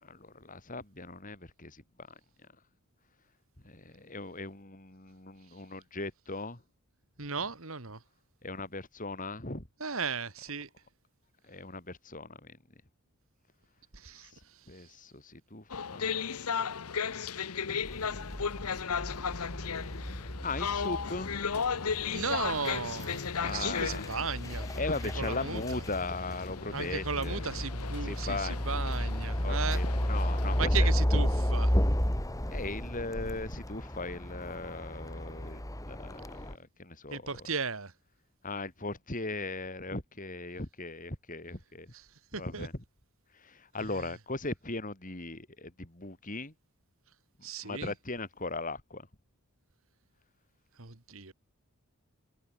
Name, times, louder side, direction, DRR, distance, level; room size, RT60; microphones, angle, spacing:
voice 1, 0.0-2.1 3.6-6.6 8.4-9.7 11.5-12.6 14.3-14.4 14.7-16.2 18.8-19.6 20.4-21.3 23.3-24.1 24.7-27.4 28.0-28.7 29.4-30.9 32.5-37.5 38.4-41.9 42.4-42.7 43.3-46.5 47.6-49.1, left 3 dB, 35° left, 3.9 m, -39 dB
voice 2, 7.2-8.0 9.8-10.7 13.9-14.9 22.1-25.8 26.7-29.8 30.6-31.7 37.1-37.9 41.9-42.0 42.3-42.7 43.8-44.1 47.4-47.9 50.8-51.3, right 5 dB, 65° right, 2.3 m, -36 dB
sound 1, 15.7-30.6, left 6 dB, 85° left, 0.9 m, -36 dB
sound 2, 17.8-36.5, equal, 15° left, 2.5 m, -33 dB
head